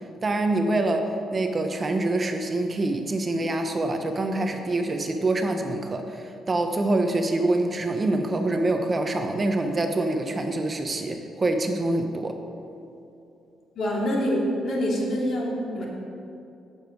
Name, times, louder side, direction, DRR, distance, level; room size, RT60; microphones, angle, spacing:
voice 1, 0.2-12.4, right 2 dB, 25° right, 5 dB, 0.8 m, -25 dB
voice 2, 13.8-15.8, equal, 55° left, -3 dB, 2.6 m, -26 dB
17.0 x 7.1 x 4.6 m, 2.7 s
cardioid pair, 145°, 0 cm